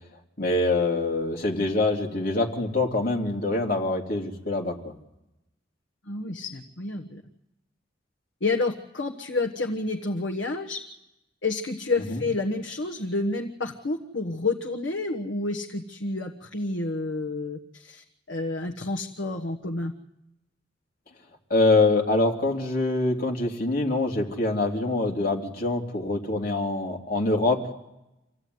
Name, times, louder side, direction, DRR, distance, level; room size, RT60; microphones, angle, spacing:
voice 1, 0.4-4.9 12.1-12.2 21.5-27.6, left 2 dB, 50° left, -1 dB, 3.0 m, -24 dB
voice 2, 6.1-7.2 8.4-10.8 11.4-19.9, left 3 dB, 75° left, 2 dB, 1.3 m, -29 dB
26.5 x 15.5 x 9.5 m, 0.92 s
head